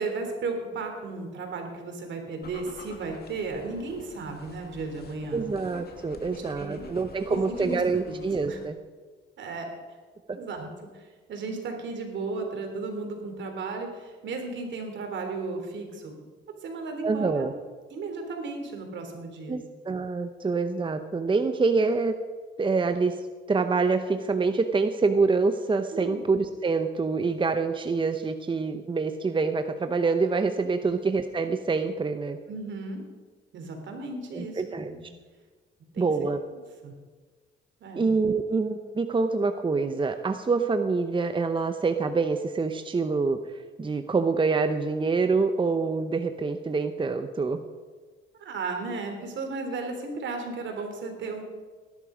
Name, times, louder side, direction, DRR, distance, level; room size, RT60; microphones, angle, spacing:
voice 1, 0.0-5.5 6.2-7.0 7.3-7.8 8.1-8.6 9.4-9.7 10.3-16.1 16.6-17.5 17.9-19.6 25.9-26.2 30.8-30.9 32.5-33.0 33.5-35.1 35.9-36.1 36.5-36.9 37.8-38.1 48.4-51.4, right 3 dB, 65° right, 4 dB, 3.4 m, -35 dB
sound 1, 2.4-8.7, left 4 dB, 55° left, 2.1 m, -48 dB
voice 2, 5.3-8.7 10.3-10.4 17.0-17.5 19.5-22.1 22.6-23.2 23.5-32.4 34.3-34.9 36.0-36.4 37.9-43.4 43.8-47.6, right 4 dB, 25° right, 8 dB, 0.8 m, -26 dB
18.0 x 11.0 x 5.0 m, 1.4 s
cardioid pair, 90°, 20 cm